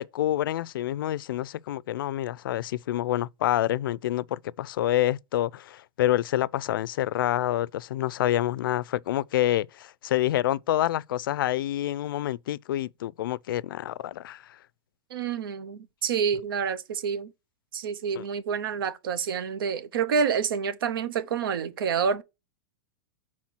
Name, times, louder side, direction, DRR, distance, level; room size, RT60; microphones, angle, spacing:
voice 1, 0.0-14.6 18.2-18.3, left 13 dB, 75° left, 0.4 m, -27 dB
voice 2, 15.1-17.3 17.7-22.2, right 6 dB, 85° right, 0.9 m, -28 dB
5.8 x 4.3 x 6.0 m
supercardioid pair, 170°, 12 cm